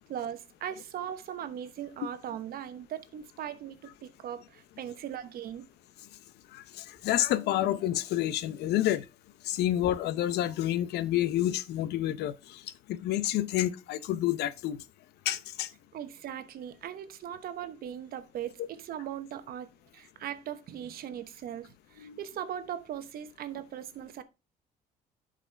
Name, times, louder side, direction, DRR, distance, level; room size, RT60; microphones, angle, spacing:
voice 1, 0.1-5.7 15.9-24.2, right 10 dB, 60° right, 1.0 m, -39 dB
voice 2, 6.5-9.1 9.4-12.6 12.9-14.8 15.3-15.7 22.0-22.2, left 13 dB, 75° left, 0.7 m, -29 dB
11.0 x 5.0 x 3.3 m
cardioid pair, 110°, 17 cm